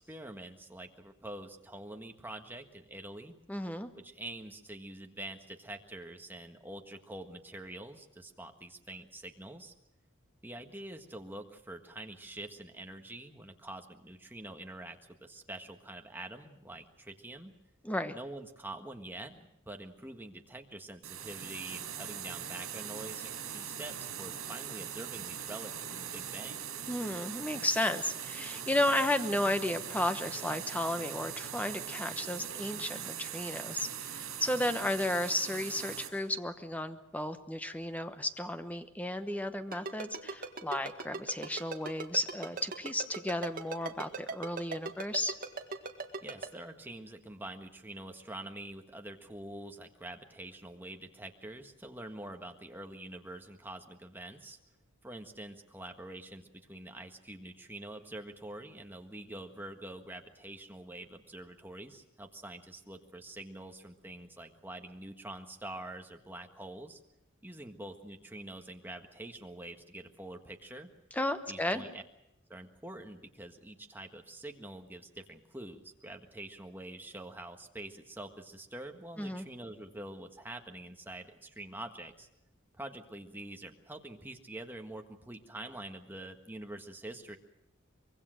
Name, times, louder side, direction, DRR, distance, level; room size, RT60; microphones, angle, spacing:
voice 1, 0.0-3.4 4.0-9.7 10.4-17.5 18.1-26.6 34.6-34.7 46.2-54.6 55.0-67.0 67.4-70.9 71.5-72.0 72.5-82.3 82.8-87.4, right 1 dB, 10° right, 4 dB, 1.6 m, -46 dB
voice 2, 3.5-3.9 17.8-18.2 26.9-45.3 71.1-71.8 79.2-79.4, left 1 dB, 5° left, 9 dB, 1.0 m, -33 dB
sound 1, 21.0-36.1, right 8 dB, 75° right, 6.1 m, -41 dB
Ringtone, 39.7-46.5, right 4 dB, 40° right, 1.9 m, -38 dB
24.5 x 22.5 x 6.4 m, 0.81 s
head